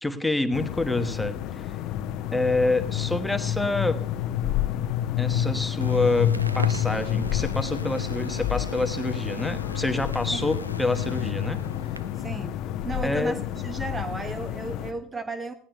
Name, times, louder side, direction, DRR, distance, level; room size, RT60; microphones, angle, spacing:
voice 1, 0.0-1.8 2.3-4.0 5.2-11.6 13.0-13.4, left 2 dB, 5° left, 9 dB, 1.2 m, -27 dB
sound 1, 0.5-14.9, left 11 dB, 55° left, 0.9 m, -29 dB
sound 2, 5.8-12.3, left 3 dB, 85° left, 0.6 m, -38 dB
Crackle, 6.2-12.4, right 3 dB, 85° right, 0.4 m, -43 dB
voice 2, 12.2-12.6 12.8-15.5, right 3 dB, 20° right, 11 dB, 0.8 m, -34 dB
19.0 x 15.5 x 2.2 m, 0.63 s
figure-of-eight pair, 65°, 0 cm